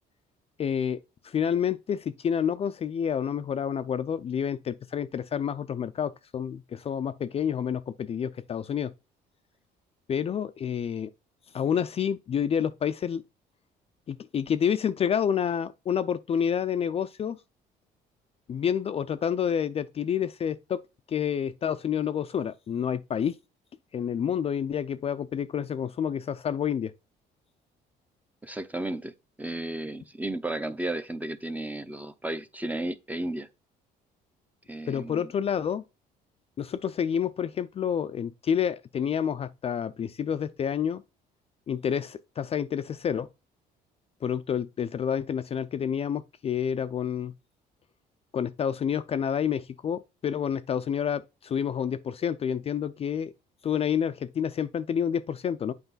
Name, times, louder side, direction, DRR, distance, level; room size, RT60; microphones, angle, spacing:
voice 1, 0.6-1.0 1.2-8.9 10.1-11.1 11.5-13.2 14.1-17.4 18.5-20.8 21.1-23.4 23.9-26.9 34.9-35.8 36.6-41.0 41.7-43.3 44.2-47.3 48.3-53.3 53.6-55.7, left 8 dB, 35° left, 0.4 m, -29 dB
voice 2, 28.4-29.1 29.4-33.5 34.7-35.3, right 1 dB, 10° right, 0.6 m, -33 dB
8.1 x 4.6 x 4.0 m
cardioid pair, 110°, 17 cm